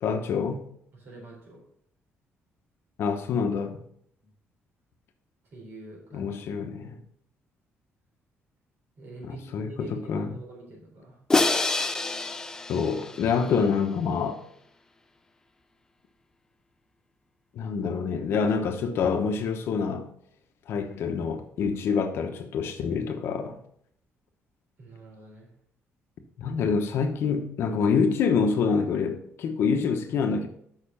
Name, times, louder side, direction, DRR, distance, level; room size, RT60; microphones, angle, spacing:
voice 1, 0.0-0.7 3.0-3.8 6.1-7.0 9.2-10.3 12.7-14.4 17.5-20.1 20.7-23.6 26.4-30.5, left 5 dB, 60° left, 1.0 m, -26 dB
voice 2, 0.9-1.6 4.2-4.3 5.5-6.3 9.0-11.2 24.8-25.5, right 2 dB, 50° right, 3.8 m, -45 dB
Crash cymbal, 11.3-13.5, left 3 dB, 15° left, 0.4 m, -26 dB
6.7 x 5.7 x 5.6 m
cardioid pair, 155°, 5 cm